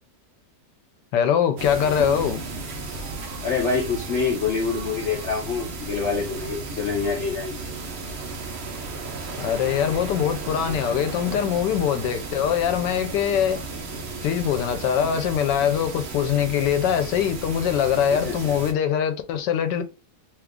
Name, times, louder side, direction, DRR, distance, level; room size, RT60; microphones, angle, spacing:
voice 1, 1.1-2.4 9.4-13.6 14.2-19.8, left 9 dB, 90° left, 1.3 m, -23 dB
sound 1, 1.6-18.7, right 3 dB, 55° right, 0.7 m, -34 dB
voice 2, 3.4-7.7 18.1-18.6, left 5 dB, 60° left, 0.8 m, -26 dB
3.1 x 2.4 x 3.5 m
omnidirectional pair, 1.8 m